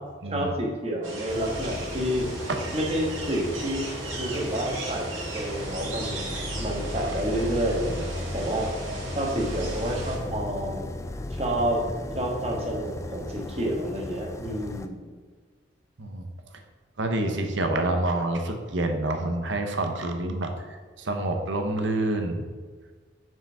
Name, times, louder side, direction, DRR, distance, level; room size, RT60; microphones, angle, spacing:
voice 1, 0.3-2.3 2.7-3.8 4.2-8.7 9.1-10.9 11.4-11.9 12.1-15.1, right 1 dB, 30° right, -1 dB, 1.3 m, -29 dB
sound 1, 1.0-10.2, right 2 dB, 85° right, 2.0 m, -37 dB
sound 2, 1.3-14.9, left 1 dB, 15° left, 0.3 m, -36 dB
voice 2, 17.0-22.5, right 2 dB, 70° right, 5 dB, 0.9 m, -27 dB
5.9 x 5.0 x 5.5 m, 1.5 s
head